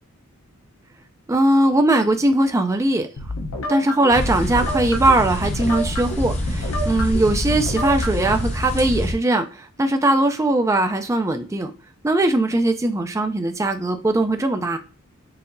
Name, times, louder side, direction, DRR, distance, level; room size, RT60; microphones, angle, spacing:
voice 1, 1.3-3.1 3.7-11.7 12.0-14.8, right 1 dB, 15° right, 0.3 m, -20 dB
sound 1, 3.2-8.3, equal, 65° left, 0.7 m, -30 dB
sound 2, 4.1-9.1, left 1 dB, 30° left, 0.8 m, -26 dB
5.7 x 2.7 x 2.6 m
head